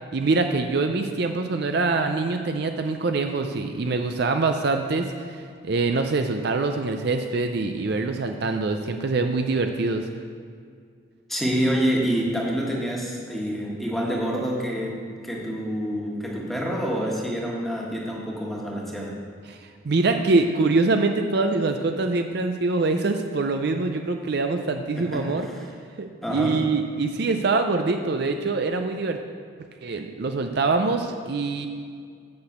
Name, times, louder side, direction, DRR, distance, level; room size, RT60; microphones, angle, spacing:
voice 1, 0.1-10.1 19.5-19.6 19.8-25.5 26.0-29.2 29.8-31.7, right 3 dB, 50° right, 5 dB, 0.5 m, -24 dB
voice 2, 11.3-19.2 24.9-25.6 26.2-26.6, equal, ahead, -3 dB, 1.5 m, -27 dB
8.6 x 6.0 x 7.9 m, 2.2 s
head